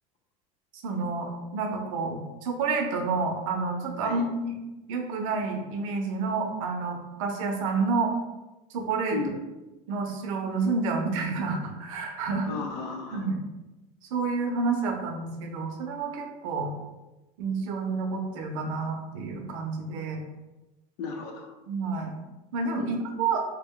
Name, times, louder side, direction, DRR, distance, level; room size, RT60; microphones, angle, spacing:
voice 1, 0.8-4.6 4.9-8.1 8.7-9.2 9.9-12.5 13.1-13.4 14.1-16.7 17.4-20.2 21.7-22.1 22.5-23.4, right 4 dB, 75° right, 3 dB, 0.7 m, -29 dB
voice 2, 12.5-13.3 21.0-21.5 22.8-23.2, left 4 dB, 60° left, 2 dB, 0.7 m, -35 dB
3.4 x 2.2 x 3.6 m, 1.0 s
cardioid pair, 180°, 17 cm